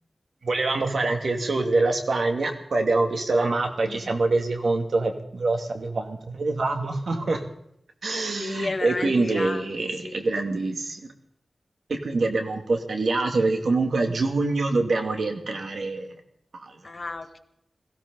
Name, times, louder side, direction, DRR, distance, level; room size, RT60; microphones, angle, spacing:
voice 1, 0.4-7.4 8.0-11.0 11.9-16.1 16.5-16.7, right 3 dB, 85° right, 4 dB, 2.5 m, -25 dB
voice 2, 3.9-4.2 8.4-10.2 16.8-17.4, left 3 dB, 50° left, 6 dB, 1.7 m, -33 dB
21.0 x 16.0 x 3.9 m, 0.73 s
wide cardioid pair, 100°, 0 cm